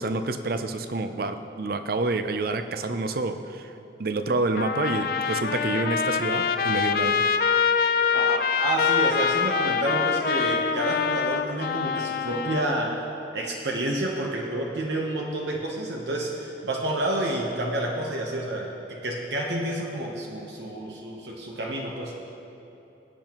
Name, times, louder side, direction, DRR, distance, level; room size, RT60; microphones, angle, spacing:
voice 1, 0.0-3.7 4.0-7.3, right 3 dB, 55° right, 9 dB, 0.5 m, -28 dB
Trumpet, 4.6-12.7, left 6 dB, 55° left, 0.4 m, -25 dB
voice 2, 8.1-13.0 13.3-22.1, right 1 dB, 70° right, 0 dB, 1.0 m, -29 dB
21.5 x 8.6 x 3.0 m, 3.0 s
head